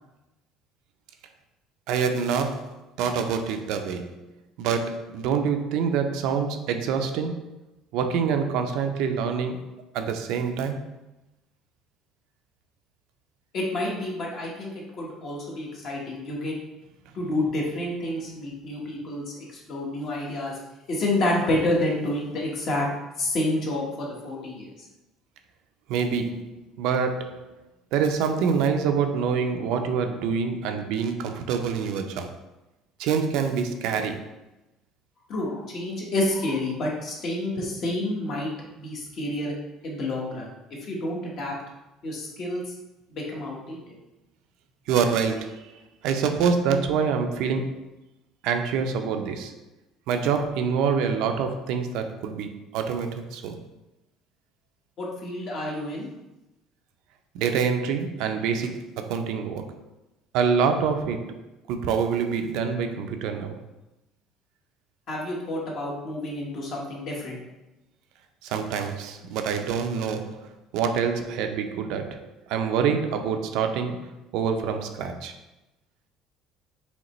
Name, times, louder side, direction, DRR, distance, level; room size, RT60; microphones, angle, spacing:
voice 1, 1.9-4.3 4.6-7.5 7.9-9.7 9.9-10.9 25.9-27.6 27.9-32.3 33.0-34.3 44.9-47.8 48.4-49.5 50.1-53.6 57.3-59.8 60.3-61.4 61.7-63.6 68.4-75.3, right 6 dB, 70° right, 6 dB, 0.4 m, -26 dB
voice 2, 13.5-16.5 17.1-20.6 20.9-22.9 23.2-24.7 35.3-39.5 39.8-40.5 40.8-41.5 42.0-42.7 43.1-43.9 55.0-56.1 65.1-67.4, left 1 dB, 45° left, -2 dB, 1.2 m, -29 dB
5.0 x 3.2 x 3.1 m, 0.99 s
cardioid pair, 155°, 0 cm